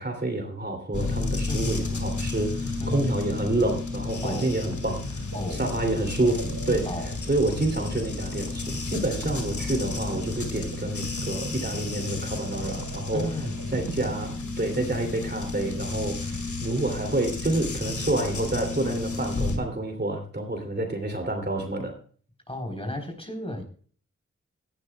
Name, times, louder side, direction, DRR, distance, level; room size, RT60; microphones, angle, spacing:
voice 1, 0.0-6.9 7.3-13.3 13.7-22.0, right 2 dB, 35° right, 4 dB, 2.7 m, -28 dB
sound 1, 0.9-19.6, left 3 dB, 90° left, 2.2 m, -32 dB
voice 2, 4.2-4.5 5.3-5.6 6.8-7.1 13.1-13.6 22.5-23.6, left 1 dB, 20° left, 4 dB, 3.7 m, -33 dB
sound 2, 4.4-15.0, right 5 dB, 85° right, 1.2 m, -42 dB
17.5 x 12.0 x 2.3 m, 0.43 s
wide cardioid pair, 75°, 29 cm